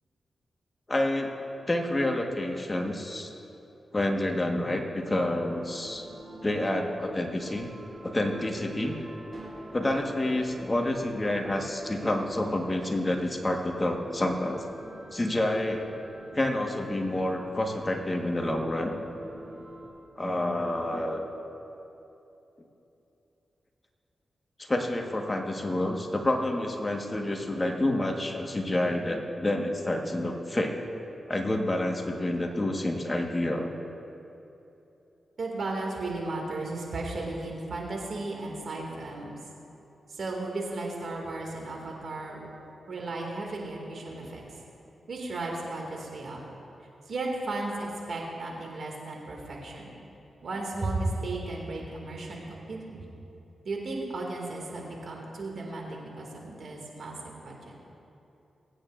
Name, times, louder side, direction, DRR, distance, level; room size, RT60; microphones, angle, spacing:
voice 1, 0.9-1.4 1.7-3.3 3.9-6.1 6.4-7.7 8.0-8.9 9.7-14.6 15.1-15.8 16.3-19.0 20.2-21.3 24.6-30.8 31.3-33.7, left 1 dB, 25° left, 2 dB, 1.4 m, -28 dB
sound 1, 4.9-19.9, right 1 dB, 50° right, 2.2 m, -47 dB
voice 2, 35.4-39.4 40.1-42.5 42.9-44.4 45.1-46.4 47.1-50.0 50.4-53.0 53.6-57.2 57.4-57.6, right 2 dB, 70° right, -1 dB, 2.2 m, -35 dB
21.5 x 8.9 x 2.5 m, 2.9 s
cardioid pair, 50°, 0 cm